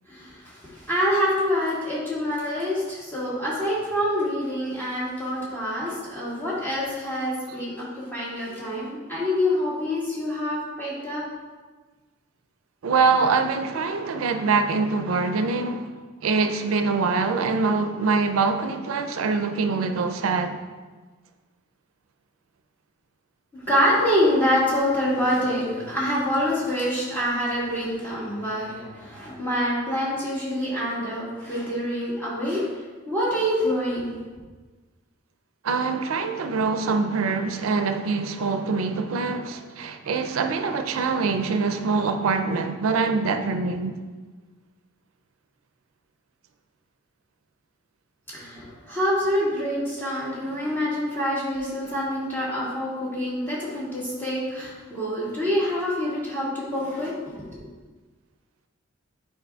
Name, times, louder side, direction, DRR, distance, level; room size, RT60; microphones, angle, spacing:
voice 1, 0.1-11.2 23.5-32.7 33.1-34.2 48.3-57.7, equal, 10° left, 1.7 m, -26 dB
voice 2, 12.8-15.9 16.2-20.6 35.6-44.0, right 4 dB, 85° right, 0.4 m, -24 dB
9.1 x 4.5 x 2.3 m
head